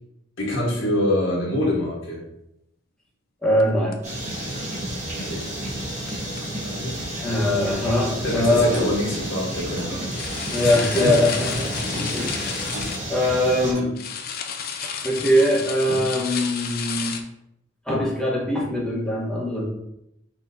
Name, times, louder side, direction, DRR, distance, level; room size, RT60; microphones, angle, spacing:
voice 1, 0.4-2.2 5.2-5.4 6.6-6.9 8.2-10.1 10.6-11.2 12.9-13.0, left 1 dB, 70° left, -4 dB, 1.3 m, -25 dB
voice 2, 3.4-4.0 7.2-8.8 10.5-12.7 13.1-13.9 14.8-17.2 17.9-19.7, left 1 dB, 5° left, -5 dB, 1.0 m, -22 dB
sound 1, 3.6-3.7 3.9-4.1 4.5-4.6 4.9-5.3 5.6-6.4 8.0-8.1 10.1-13.0 14.0-17.2, left 7 dB, 45° left, 0.4 m, -32 dB
sound 2, 4.0-13.7, right 1 dB, 35° right, 1.2 m, -31 dB
Clock, 8.7-8.9 9.8-10.0 10.7-10.9 11.7-12.0 12.7-12.9 13.7-14.0, left 1 dB, 80° right, 1.6 m, -36 dB
6.0 x 3.0 x 2.6 m, 0.83 s
head